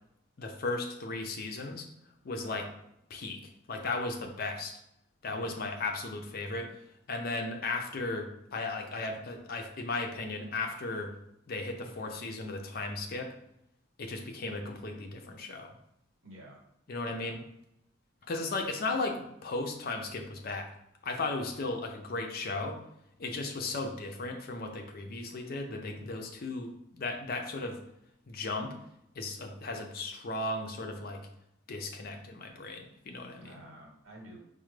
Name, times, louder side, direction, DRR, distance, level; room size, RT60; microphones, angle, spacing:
voice 1, 0.4-1.9 2.2-2.6 3.1-3.4 3.7-4.7 5.2-6.7 7.1-11.1 11.5-13.3 14.0-15.7 16.9-17.4 18.3-20.7 21.0-22.8 23.2-27.8 28.3-28.8 29.2-31.2 31.7-33.6, left 3 dB, 50° left, 3 dB, 0.5 m, -36 dB
voice 2, 16.2-16.6 17.0-17.4 18.2-18.3 33.4-34.4, right 1 dB, 85° right, -1 dB, 1.1 m, -51 dB
4.7 x 2.1 x 3.1 m, 0.79 s
head